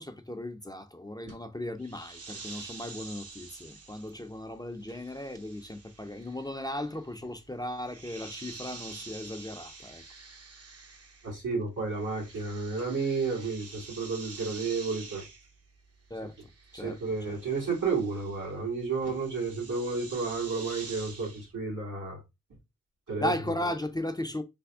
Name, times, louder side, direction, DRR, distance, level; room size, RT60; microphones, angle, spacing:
voice 1, 0.0-10.0 16.1-16.4 16.7-17.4 23.2-24.4, left 1 dB, 15° left, 0.4 m, -36 dB
sound 1, 1.8-11.5 11.8-21.5, right 4 dB, 50° right, 0.7 m, -48 dB
voice 2, 11.2-15.2 16.7-22.2 23.1-23.3, right 4 dB, 90° right, 2.0 m, -31 dB
3.4 x 2.0 x 3.5 m
cardioid pair, 45°, 30 cm